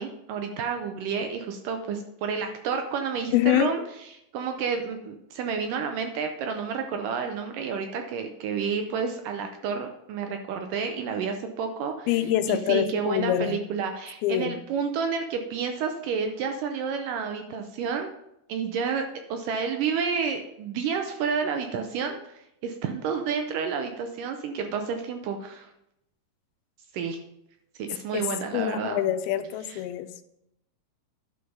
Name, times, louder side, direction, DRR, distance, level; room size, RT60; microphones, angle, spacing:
voice 1, 0.0-3.8 4.1-12.1 12.5-18.1 18.5-25.7 26.9-27.2 27.8-29.0 29.7-29.8, right 6 dB, 75° right, 5 dB, 2.1 m, -30 dB
voice 2, 3.3-3.7 12.1-13.6 14.2-14.6 28.1-28.3 28.5-30.2, left 12 dB, 85° left, 11 dB, 2.4 m, -25 dB
11.5 x 5.1 x 5.4 m, 0.81 s
omnidirectional pair, 4.4 m